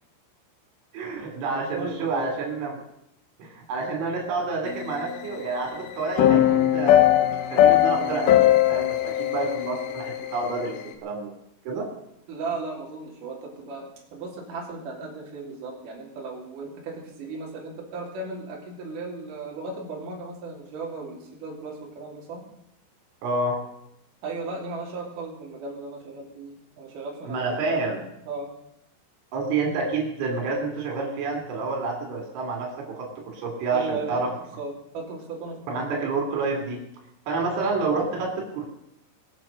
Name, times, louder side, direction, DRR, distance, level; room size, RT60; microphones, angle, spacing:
voice 1, 0.9-2.8 3.4-7.0 7.5-11.3 11.7-11.9 23.2-23.6 27.3-28.1 29.3-34.3 35.7-36.8 37.3-38.7, right 3 dB, 80° right, 1 dB, 5.3 m, -29 dB
voice 2, 1.5-2.3 12.3-22.4 24.2-27.8 28.3-28.5 33.7-34.1 34.6-36.1, right 3 dB, 45° right, -3 dB, 4.3 m, -36 dB
sound 1, 4.7-5.8 6.2-10.8, left 12 dB, 75° left, 3.0 m, -21 dB
22.0 x 7.8 x 6.4 m, 0.79 s
omnidirectional pair, 5.5 m